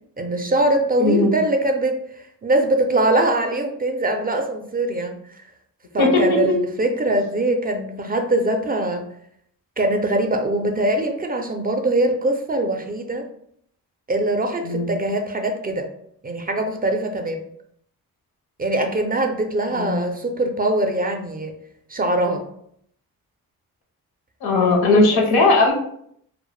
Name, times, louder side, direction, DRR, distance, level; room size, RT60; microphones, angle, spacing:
voice 1, 0.2-5.2 5.9-9.1 9.8-13.3 14.1-15.9 16.2-17.4 18.6-21.5 21.9-22.5 25.1-25.2, right 1 dB, 25° right, 4 dB, 0.4 m, -22 dB
voice 2, 1.0-1.3 6.0-6.5 14.6-14.9 19.7-20.2 24.4-25.7, left 2 dB, 85° left, 2 dB, 0.6 m, -18 dB
2.1 x 2.1 x 3.0 m, 0.68 s
cardioid pair, 60°, 36 cm